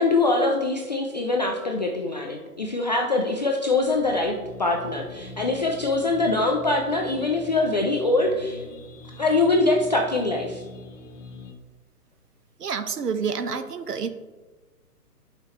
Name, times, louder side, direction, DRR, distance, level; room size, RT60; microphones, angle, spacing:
voice 1, 0.0-8.6 9.2-10.6, left 2 dB, 30° left, 1 dB, 0.4 m, -23 dB
sound 1, 3.7-11.5, left 2 dB, 50° left, 1.2 m, -43 dB
voice 2, 12.6-14.1, right 6 dB, 80° right, 10 dB, 0.9 m, -28 dB
10.5 x 5.7 x 3.1 m, 1.2 s
figure-of-eight pair, 135°, 46 cm